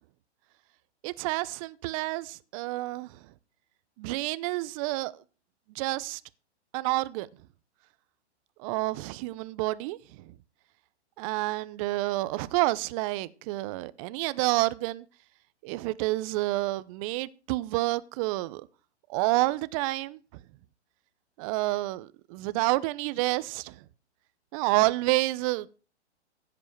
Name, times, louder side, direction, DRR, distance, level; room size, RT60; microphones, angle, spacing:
voice 1, 1.0-3.1 4.0-5.1 5.7-6.2 6.7-7.3 8.6-10.2 11.2-15.0 15.6-18.7 19.1-20.2 21.4-23.7 24.5-25.7, right 20 dB, 30° right, 0.8 m, -29 dB
15.5 x 8.4 x 4.7 m
hypercardioid pair, 130°, 35 cm